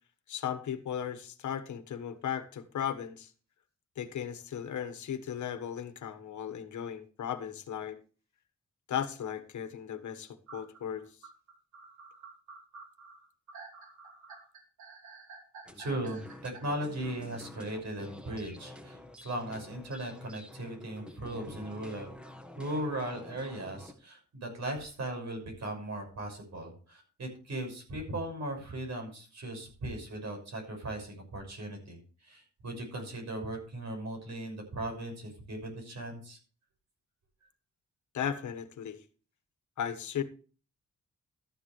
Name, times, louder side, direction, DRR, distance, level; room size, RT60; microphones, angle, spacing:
voice 1, 0.3-3.3 4.0-8.0 8.9-11.1 38.1-39.0 39.8-40.2, left 9 dB, 80° left, 1.4 m, -36 dB
sound 1, 10.5-16.6, right 4 dB, 85° right, 3.2 m, -50 dB
sound 2, 15.7-23.9, left 1 dB, 5° right, 1.7 m, -49 dB
voice 2, 15.8-22.1 22.6-36.4, right 1 dB, 70° right, 6.1 m, -38 dB
13.5 x 10.5 x 3.2 m
cardioid pair, 105°, 29 cm